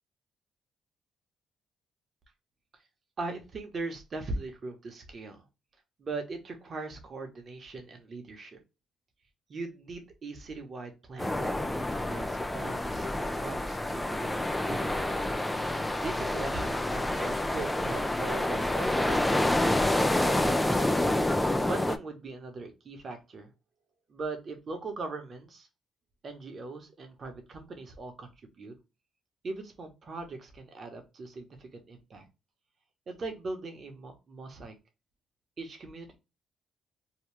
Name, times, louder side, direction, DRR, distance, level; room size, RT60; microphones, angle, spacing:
voice 1, 3.2-5.4 6.0-8.6 9.5-15.3 15.7-19.4 20.0-21.0 21.7-23.5 24.1-25.7 26.2-28.3 28.6-28.7 29.4-32.2 33.1-34.7 35.6-36.2, right 3 dB, 45° right, 4 dB, 0.9 m, -40 dB
sound 1, 11.2-22.0, left 1 dB, 10° left, 0.3 m, -28 dB
2.8 x 2.3 x 3.2 m, 0.27 s
cardioid pair, 90°, 0 cm